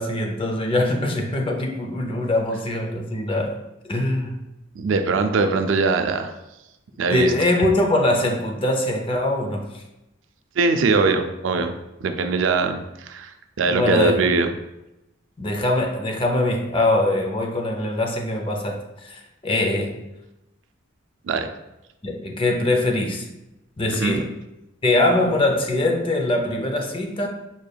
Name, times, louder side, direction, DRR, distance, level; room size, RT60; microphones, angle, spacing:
voice 1, 0.0-3.6 3.8-4.3 7.1-9.8 11.6-11.7 13.7-14.2 15.4-19.9 22.0-23.3 23.8-24.3 24.8-27.3, left 1 dB, 25° left, 3 dB, 0.4 m, -22 dB
voice 2, 4.8-6.3 7.0-7.3 10.6-11.7 12.0-14.5 21.2-21.5 23.9-24.2, right 4 dB, 80° right, 7 dB, 0.4 m, -21 dB
5.3 x 3.3 x 2.3 m, 0.92 s
head